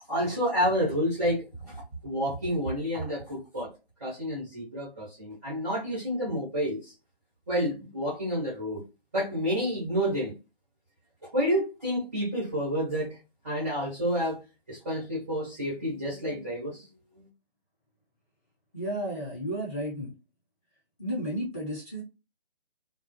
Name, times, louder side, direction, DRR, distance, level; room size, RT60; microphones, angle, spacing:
voice 1, 0.1-3.7 4.0-6.9 7.5-8.8 9.1-10.3 11.2-13.2 13.4-14.4 14.7-16.8 17.2-17.3, equal, 15° right, 0.6 m, -29 dB
voice 2, 18.7-20.1 21.0-22.0, equal, 15° left, 0.8 m, -32 dB
2.3 x 2.0 x 2.7 m
figure-of-eight pair, 160°, 31 cm